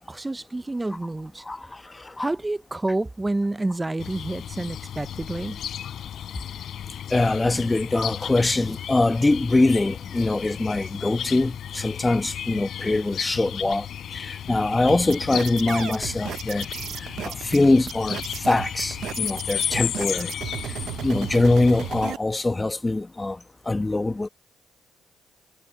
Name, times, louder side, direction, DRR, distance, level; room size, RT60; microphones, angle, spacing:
voice 1, 0.1-1.4 2.2-5.6, right 2 dB, 15° right, 0.5 m, -29 dB
voice 2, 1.5-2.3 7.1-13.9 14.1-16.7 17.2-20.4 21.0-23.4 23.7-24.3, left 2 dB, 20° left, 1.1 m, -23 dB
sound 1, 4.0-22.1, left 9 dB, 65° left, 3.6 m, -34 dB
sound 2, 14.9-22.2, right 11 dB, 70° right, 0.7 m, -34 dB
cardioid pair, 90°, 0 cm